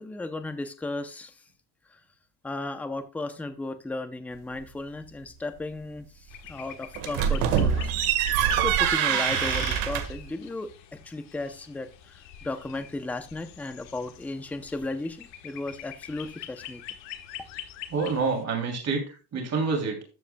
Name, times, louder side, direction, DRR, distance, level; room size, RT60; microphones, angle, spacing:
voice 1, 0.0-1.3 2.4-6.1 6.5-8.0 8.6-10.7 11.0-11.9 12.4-16.8, left 2 dB, 5° left, 0.5 m, -35 dB
sound 1, 6.3-18.4, left 11 dB, 60° left, 1.4 m, -43 dB
sound 2, 6.9-10.2, right 9 dB, 80° right, 1.7 m, -24 dB
voice 2, 17.9-20.0, right 4 dB, 30° right, 2.9 m, -28 dB
13.5 x 7.7 x 2.2 m
cardioid pair, 165°, 49 cm